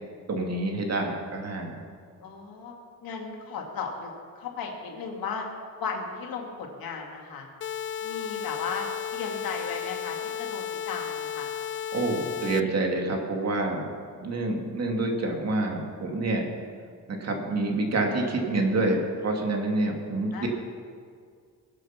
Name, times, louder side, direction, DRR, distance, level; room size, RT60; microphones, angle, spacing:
voice 1, 0.3-1.8 11.9-13.9 14.2-16.4 17.1-20.5, right 2 dB, 45° right, 1 dB, 2.2 m, -27 dB
voice 2, 2.2-2.7 3.0-4.1 4.4-5.5 5.8-7.5 8.0-11.5 20.3-20.5, left 5 dB, 70° left, 1 dB, 2.3 m, -35 dB
sound 1, 7.6-12.6, left 9 dB, 35° left, 0.4 m, -34 dB
21.0 x 8.0 x 5.8 m, 2.1 s
cardioid pair, 140°, 36 cm